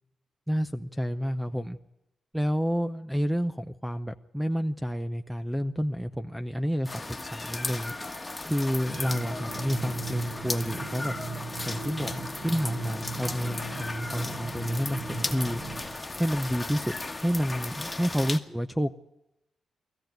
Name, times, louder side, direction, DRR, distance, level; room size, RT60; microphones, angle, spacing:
voice 1, 0.5-1.8 2.3-7.9 8.4-11.1 11.7-15.6 16.2-19.0, equal, 5° right, 9 dB, 0.7 m, -29 dB
sound 1, 6.8-18.4, left 2 dB, 10° left, 1.5 m, -36 dB
sound 2, 8.9-15.8, right 3 dB, 60° right, 4.6 m, -38 dB
20.5 x 14.5 x 9.3 m, 0.87 s
wide cardioid pair, 120°, 0 cm